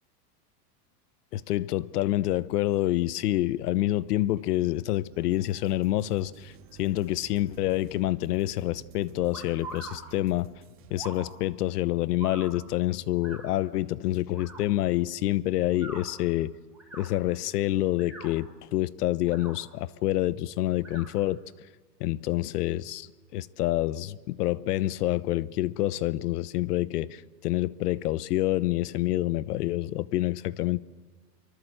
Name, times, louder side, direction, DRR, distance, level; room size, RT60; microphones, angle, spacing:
voice 1, 1.3-6.5 6.8-10.5 10.9-16.6 16.9-21.4 22.0-23.1 23.3-30.8, left 15 dB, 75° left, 0.9 m, -27 dB
sound 1, 4.3-11.4, right 9 dB, 25° right, 2.5 m, -52 dB
sound 2, 9.3-10.0 10.9-11.3 12.2-12.5 13.2-13.4 14.3-14.6 15.7-16.0 16.7-17.0 17.9-18.3 19.2-19.5 20.8-21.1, right 3 dB, ahead, 4.8 m, -43 dB
24.5 x 24.5 x 7.8 m
supercardioid pair, 170°, 48 cm